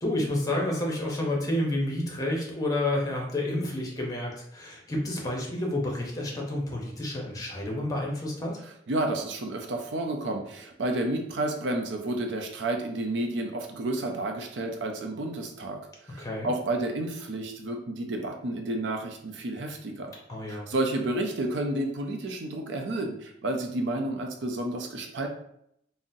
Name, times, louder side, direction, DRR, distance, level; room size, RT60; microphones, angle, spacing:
voice 1, 0.0-8.6 16.2-16.5 20.3-20.7, left 1 dB, 20° left, -1 dB, 0.7 m, -30 dB
voice 2, 8.9-15.8 16.0-20.1 20.5-25.3, right 2 dB, 80° right, 3 dB, 0.5 m, -31 dB
3.7 x 2.0 x 2.6 m, 0.74 s
head